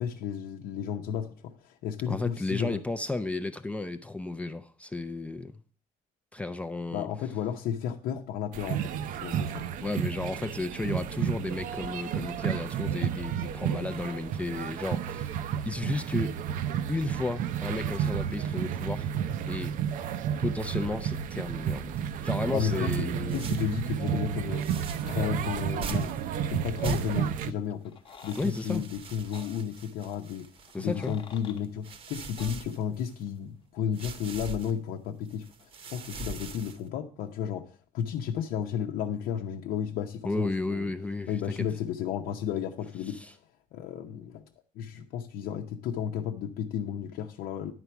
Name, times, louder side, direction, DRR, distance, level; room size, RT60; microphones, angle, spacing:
voice 1, 0.0-2.8 6.9-9.7 12.1-12.2 22.5-24.7 25.1-26.2 26.5-28.0 28.2-30.5 30.8-40.9 41.3-43.4 43.7-44.5 44.7-47.7, left 8 dB, 90° left, 0.8 m, -33 dB
voice 2, 2.1-5.5 6.3-7.1 9.8-16.4 16.9-19.1 19.5-19.8 20.4-21.9 22.2-23.4 28.4-28.8 30.7-31.1 40.2-41.4, left 2 dB, 10° left, 0.4 m, -33 dB
sound 1, 8.5-27.5, right 9 dB, 65° right, 0.6 m, -31 dB
sound 2, 23.3-23.8 24.6-25.2 25.8-26.3 26.8-27.4 28.1-31.1 31.6-33.3 33.9-34.7 35.3-36.9, right 4 dB, 40° right, 0.9 m, -42 dB
sound 3, 27.8-28.5 29.3-29.5 30.7-31.6 32.4-32.6, left 6 dB, 35° left, 0.9 m, -48 dB
11.0 x 4.6 x 7.0 m
cardioid pair, 175°, 15 cm